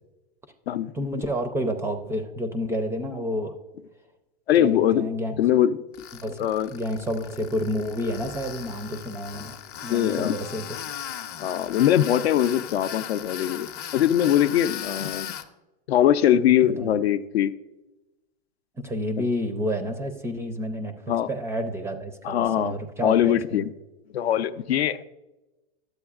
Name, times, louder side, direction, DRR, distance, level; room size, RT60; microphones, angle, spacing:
voice 1, 0.9-3.6 4.6-5.4 6.1-10.6 16.6-17.0 18.8-23.6, equal, 10° right, 8 dB, 0.4 m, -30 dB
voice 2, 4.5-5.1 5.4-5.8 6.4-6.7 9.9-10.3 11.4-15.3 15.9-17.5 21.1-21.3 22.2-22.7 23.0-23.7 24.1-25.1, left 11 dB, 75° left, 13 dB, 0.6 m, -22 dB
Tools, 5.9-15.4, left 10 dB, 30° left, 0.6 m, -37 dB
12.0 x 7.9 x 2.4 m, 1.0 s
hypercardioid pair, 125°, 32 cm